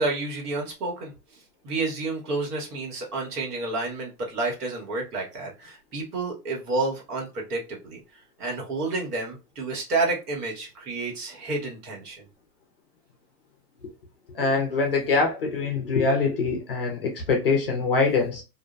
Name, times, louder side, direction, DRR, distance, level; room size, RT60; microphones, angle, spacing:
voice 1, 0.0-12.3, right 3 dB, 70° right, 1.4 m, -30 dB
voice 2, 14.3-18.4, left 4 dB, 40° left, 0.4 m, -24 dB
2.4 x 2.0 x 2.4 m
supercardioid pair, 175°, 47 cm